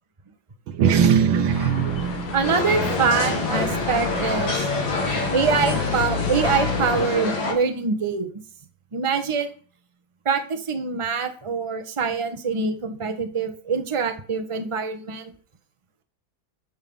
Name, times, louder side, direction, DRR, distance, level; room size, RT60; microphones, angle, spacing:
sound 1, 0.7-5.5, right 7 dB, 80° right, 1.8 m, -24 dB
sound 2, 1.5-7.1, left 6 dB, 85° left, 2.5 m, -30 dB
voice 1, 2.3-4.5 5.3-8.3 8.9-9.5 10.2-15.3, right 5 dB, 20° right, 7 dB, 1.0 m, -24 dB
sound 3, 2.4-7.5, left 3 dB, 70° left, 3.3 m, -27 dB
12.0 x 6.3 x 5.6 m, 0.42 s
omnidirectional pair, 2.2 m